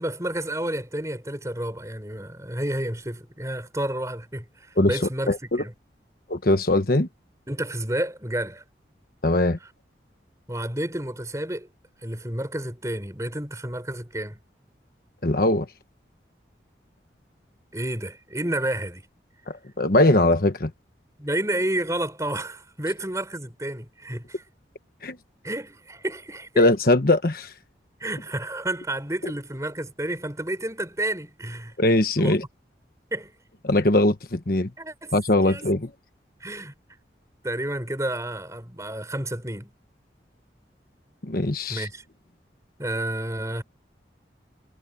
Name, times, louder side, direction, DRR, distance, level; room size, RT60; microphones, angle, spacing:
voice 1, 0.0-5.7 7.5-8.6 10.5-11.7 12.0-14.4 17.7-19.0 21.2-24.4 25.4-26.6 28.0-31.7 32.2-32.4 33.1-33.3 34.8-35.1 35.4-35.6 36.4-36.7 37.4-39.7 41.7-42.0 42.8-43.6, right 1 dB, 15° right, 5.2 m, -30 dB
voice 2, 5.3-5.6 6.3-7.1 9.2-9.6 15.2-15.7 19.5-20.7 25.0-25.2 26.6-27.5 31.8-32.4 33.6-34.7 35.1-35.9 41.2-41.8, left 1 dB, 55° left, 1.3 m, -21 dB
head